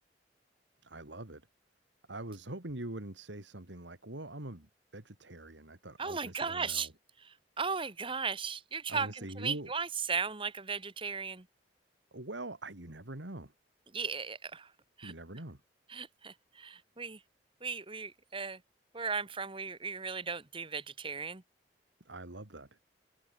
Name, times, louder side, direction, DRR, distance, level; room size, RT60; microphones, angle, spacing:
voice 1, 0.8-1.5 2.1-6.9 8.9-9.7 12.1-13.5 15.0-15.6 22.0-22.7, right 1 dB, 90° right, 3.2 m, -43 dB
voice 2, 6.0-6.9 7.2-11.4 13.9-14.7 15.0-15.1 15.9-17.2 17.6-18.6 18.9-21.4, right 5 dB, 30° right, 1.6 m, -36 dB
head